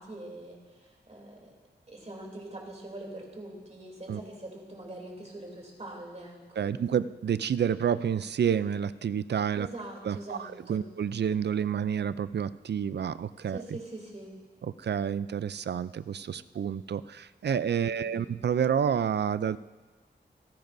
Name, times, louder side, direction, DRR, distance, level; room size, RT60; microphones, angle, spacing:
voice 1, 0.0-1.5 1.9-6.7 9.5-10.9 13.5-14.3 17.8-18.3, right 1 dB, 35° right, -1 dB, 3.0 m, -43 dB
voice 2, 6.6-9.7 10.0-13.8 14.6-19.6, right 8 dB, 70° right, 15 dB, 0.4 m, -29 dB
26.5 x 10.5 x 2.6 m, 1.2 s
wide cardioid pair, 90°, 18 cm